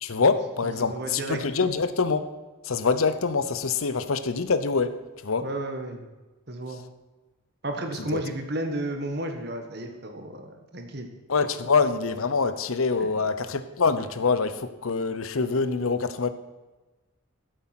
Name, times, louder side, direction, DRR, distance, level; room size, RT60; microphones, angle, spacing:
voice 1, 0.0-2.3 2.6-5.0 5.2-5.5 8.1-8.2 11.3-16.3, left 4 dB, 90° left, 12 dB, 0.8 m, -25 dB
voice 2, 0.6-1.4 5.4-6.1 6.5-6.8 7.6-11.1 13.0-13.1, right 1 dB, 50° right, 5 dB, 1.5 m, -33 dB
13.0 x 7.8 x 6.0 m, 1.2 s
head